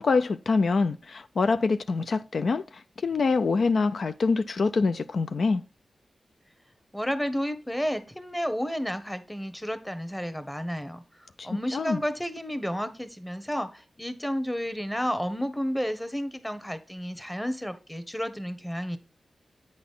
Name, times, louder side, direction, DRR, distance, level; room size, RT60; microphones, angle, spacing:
voice 1, 0.0-5.6 11.4-12.0, left 4 dB, 70° left, 0.4 m, -25 dB
voice 2, 6.9-19.0, equal, 5° left, 1.0 m, -31 dB
8.6 x 4.0 x 5.4 m
cardioid pair, 60°, 0 cm